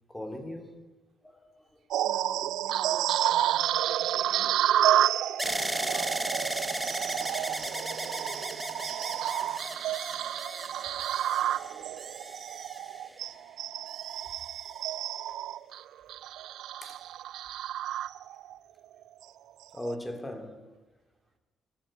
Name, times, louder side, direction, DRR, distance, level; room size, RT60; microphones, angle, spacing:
voice 1, 0.1-0.8 1.2-1.8 3.8-3.9 4.9-5.0 7.0-7.1 8.6-8.7 9.5-9.6 11.4-12.4 16.8-17.0 19.7-20.8, left 1 dB, 10° left, 3.2 m, -41 dB
sound 1, 1.9-18.6 19.0-19.2 19.8-19.9, right 12 dB, 80° right, 0.6 m, -30 dB
voice 2, 2.0-4.6 5.5-10.2, right 6 dB, 60° right, 3.2 m, -50 dB
sound 2, 5.4-13.4 14.1-14.8, right 1 dB, 5° right, 1.1 m, -36 dB
23.5 x 14.5 x 9.0 m
cardioid pair, 90°, 0 cm